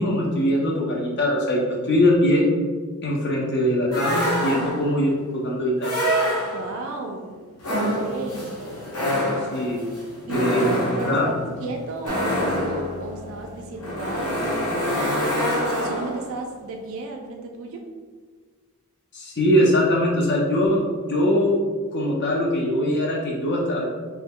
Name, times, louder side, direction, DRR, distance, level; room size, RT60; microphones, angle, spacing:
voice 1, 0.0-2.5 3.0-5.9 9.5-9.9 10.3-11.3 19.1-21.6 21.9-23.9, left 1 dB, 50° left, -3 dB, 0.5 m, -22 dB
sound 1, 3.9-5.0 5.8-6.8 7.6-16.3, equal, 80° left, 0.9 m, -26 dB
voice 2, 6.4-7.4 7.7-8.6 10.3-11.4 11.6-15.1 15.4-17.8, right 3 dB, 60° right, 2 dB, 0.3 m, -34 dB
Acoustic guitar, 12.1-15.9, equal, 20° right, 0.6 m, -39 dB
3.1 x 2.2 x 3.5 m, 1.5 s
head